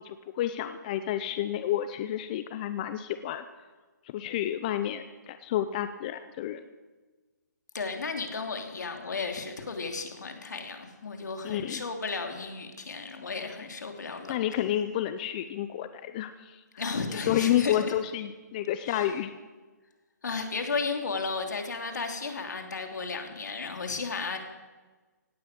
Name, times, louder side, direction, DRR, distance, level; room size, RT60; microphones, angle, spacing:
voice 1, 0.0-3.4 4.0-6.6 11.4-11.8 14.3-16.6 17.1-19.3, left 11 dB, 25° left, 10 dB, 0.6 m, -30 dB
voice 2, 7.7-14.4 16.8-17.9 18.8-19.1 20.2-24.4, left 4 dB, 75° left, 5 dB, 3.0 m, -34 dB
17.5 x 8.9 x 8.3 m, 1.3 s
hypercardioid pair, 155°, 10 cm